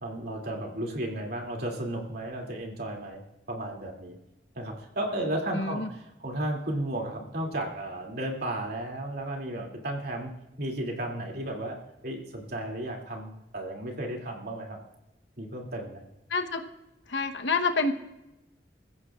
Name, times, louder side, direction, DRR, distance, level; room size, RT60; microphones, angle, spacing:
voice 1, 0.0-3.2 3.5-4.2 4.5-10.3 10.6-11.8 12.0-14.8 15.4-16.0, right 1 dB, 60° right, 1 dB, 2.6 m, -34 dB
voice 2, 5.5-5.9 16.3-16.6 17.1-17.9, left 4 dB, 85° left, 6 dB, 1.1 m, -27 dB
24.0 x 15.0 x 2.4 m, 0.95 s
head